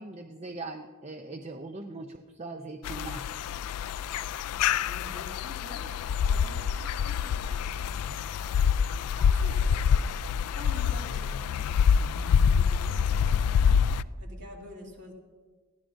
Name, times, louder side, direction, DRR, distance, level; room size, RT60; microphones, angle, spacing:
voice 1, 0.0-3.3, right 2 dB, 30° right, 6 dB, 0.5 m, -40 dB
sound 1, 2.8-14.0, left 7 dB, 85° left, 0.3 m, -26 dB
voice 2, 4.8-8.5 8.8-15.1, equal, 50° right, -2 dB, 2.8 m, -48 dB
21.0 x 15.5 x 2.6 m, 1.4 s
head